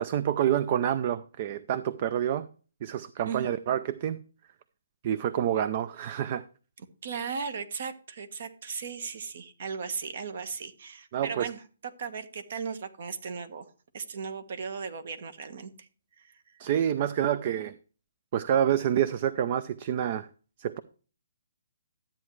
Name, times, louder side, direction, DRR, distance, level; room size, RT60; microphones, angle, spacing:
voice 1, 0.0-2.5 2.8-4.2 5.0-6.4 11.1-11.5 16.6-17.7 18.3-20.3 20.6-20.8, right 10 dB, 35° right, 15 dB, 0.5 m, -27 dB
voice 2, 6.8-11.6 12.0-13.6 13.9-15.9 16.2-16.4, right 5 dB, 55° right, 10 dB, 1.4 m, -37 dB
13.0 x 8.7 x 3.2 m, 0.37 s
hypercardioid pair, 155°, 0 cm